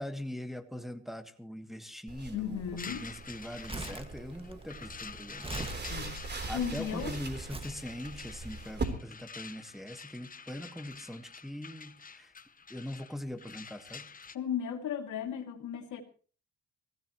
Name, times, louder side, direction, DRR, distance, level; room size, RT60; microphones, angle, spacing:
voice 1, 0.0-2.6 2.9-5.5 6.5-12.3 12.7-14.1, left 1 dB, ahead, 7 dB, 1.6 m, -42 dB
sound 1, 2.1-8.8, right 4 dB, 35° right, 3.7 m, -41 dB
voice 2, 2.3-3.1 5.9-7.1 14.3-16.0, left 8 dB, 75° left, 6 dB, 2.7 m, -36 dB
sound 2, 2.8-14.4, left 5 dB, 30° left, 1.1 m, -48 dB
Crumpling crinkling, 3.4-6.8 7.5-7.8 8.5-8.7, right 2 dB, 20° right, 1.9 m, -42 dB
23.5 x 16.5 x 3.1 m, 0.39 s
cardioid pair, 90°, 30 cm